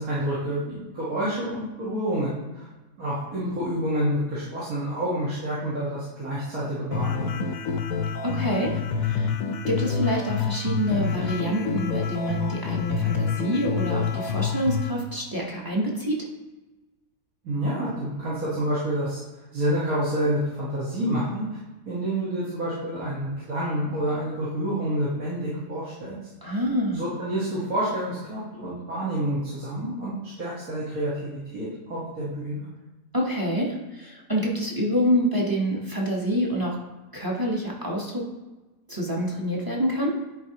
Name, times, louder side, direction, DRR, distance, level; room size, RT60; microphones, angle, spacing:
voice 1, 0.0-2.7 3.0-7.4 17.4-19.2 19.5-21.5 21.9-26.2 26.9-32.7, right 1 dB, 75° right, -9 dB, 1.9 m, -28 dB
sound 1, 6.9-14.9, left 6 dB, 75° left, 1.1 m, -27 dB
voice 2, 8.2-9.3 9.7-16.3 26.4-27.0 33.1-36.8 37.1-38.3 38.9-40.1, equal, 20° right, -2 dB, 0.8 m, -26 dB
10.5 x 4.5 x 2.8 m, 1.1 s
omnidirectional pair, 1.5 m